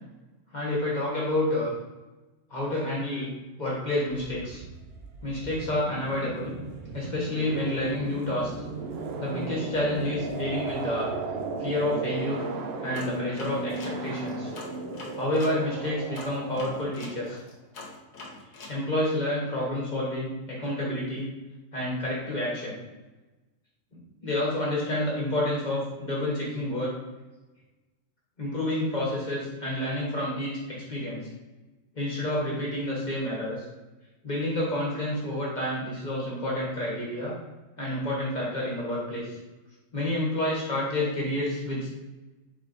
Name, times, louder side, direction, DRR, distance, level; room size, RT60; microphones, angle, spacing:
voice 1, 0.5-1.7 2.5-3.3 3.6-4.6 5.2-6.5 6.9-8.5 9.2-11.1 11.6-12.4 12.8-14.5 15.2-17.4 18.7-21.3 21.7-22.8 24.2-26.9 28.4-31.3 32.0-33.6 34.2-37.3 37.8-39.4 39.9-41.9, left 1 dB, 35° left, -5 dB, 1.3 m, -29 dB
sound 1, 4.1-17.5, right 3 dB, 65° right, 0.7 m, -36 dB
sound 2, 12.9-15.6 16.1-18.8, left 3 dB, 80° left, 1.3 m, -43 dB
4.4 x 4.1 x 2.5 m, 1.1 s
omnidirectional pair, 1.3 m